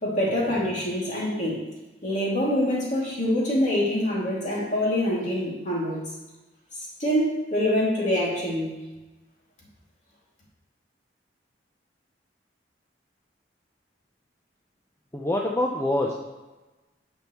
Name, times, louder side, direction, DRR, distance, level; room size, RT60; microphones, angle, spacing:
voice 1, 0.0-1.6 2.0-6.0 7.0-8.7, left 1 dB, 45° left, -4 dB, 2.4 m, -25 dB
voice 2, 15.1-16.1, left 1 dB, 15° left, -1 dB, 0.6 m, -25 dB
9.3 x 7.0 x 3.0 m, 1.1 s
head